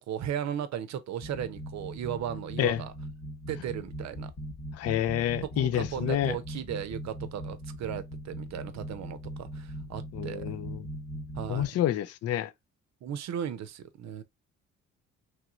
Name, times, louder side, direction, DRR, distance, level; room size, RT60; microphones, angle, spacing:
voice 1, 0.0-2.9 3.5-4.3 5.6-10.5 11.4-11.8 13.0-14.2, right 9 dB, 65° right, 0.6 m, -36 dB
sound 1, 1.2-11.7, equal, 35° left, 1.0 m, -40 dB
voice 2, 4.7-6.4 10.1-10.9 11.5-12.5, left 12 dB, 55° left, 0.4 m, -28 dB
3.1 x 3.0 x 2.4 m
cardioid pair, 90°, 30 cm